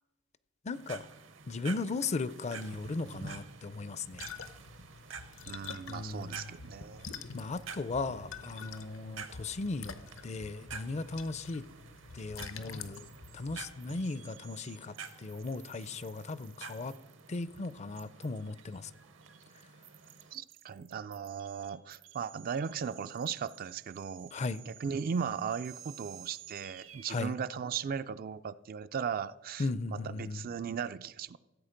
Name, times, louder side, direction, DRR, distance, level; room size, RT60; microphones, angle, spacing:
voice 1, 0.6-1.1 1.5-4.3 5.9-6.5 7.3-10.0 10.2-11.6 12.1-13.1 13.3-16.9 17.3-18.9 24.3-24.6 27.1-27.3 29.6-30.5, left 3 dB, 35° left, 17 dB, 0.4 m, -37 dB
sound 1, 0.7-20.3, right 5 dB, 65° right, 0.8 m, -50 dB
sound 2, 4.0-13.8, left 6 dB, 80° left, 0.8 m, -48 dB
voice 2, 5.5-7.1 20.3-24.3 24.7-31.4, right 6 dB, 45° right, 14 dB, 0.3 m, -37 dB
sound 3, 12.7-27.2, right 12 dB, 85° right, 1.1 m, -55 dB
15.5 x 7.9 x 5.1 m, 1.1 s
head